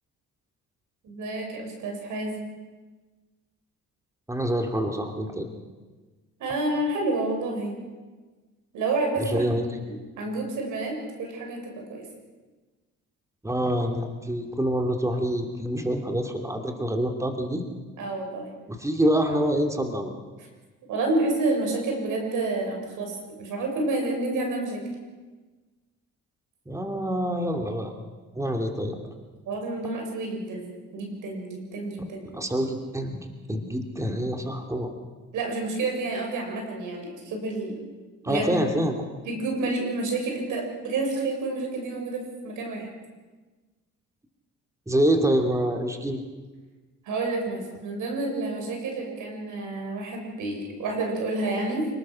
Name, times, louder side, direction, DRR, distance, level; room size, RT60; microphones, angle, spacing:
voice 1, 1.0-2.4 6.4-7.8 8.7-9.5 9.8-12.0 18.0-18.5 20.9-24.8 29.5-32.3 35.3-37.8 38.3-38.6 39.3-42.9 47.1-51.9, right 2 dB, 85° right, 2 dB, 6.9 m, -29 dB
voice 2, 4.3-5.5 9.2-9.8 13.4-17.6 18.7-20.1 26.7-27.9 28.3-29.0 32.3-34.9 38.2-38.9 44.9-46.2, equal, 10° right, 3 dB, 2.8 m, -26 dB
28.5 x 19.5 x 6.5 m, 1.3 s
cardioid pair, 90°, 30 cm